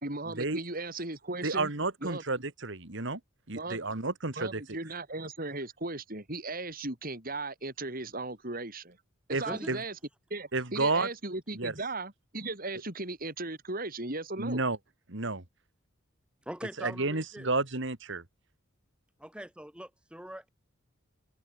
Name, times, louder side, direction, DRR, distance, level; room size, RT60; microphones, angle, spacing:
voice 1, 0.0-1.7 2.0-2.2 3.5-3.8 4.4-9.0 9.3-9.9 10.3-14.6, right 2 dB, 45° right, 5.8 m, -37 dB
voice 2, 1.4-3.2 3.5-4.6 9.3-9.8 10.5-11.1 11.5-11.7 14.4-14.8 15.1-15.4 16.8-18.2, right 3 dB, 60° right, 2.4 m, -31 dB
voice 3, 9.4-9.8 16.4-17.5 19.2-20.5, equal, 5° right, 6.8 m, -42 dB
open air
head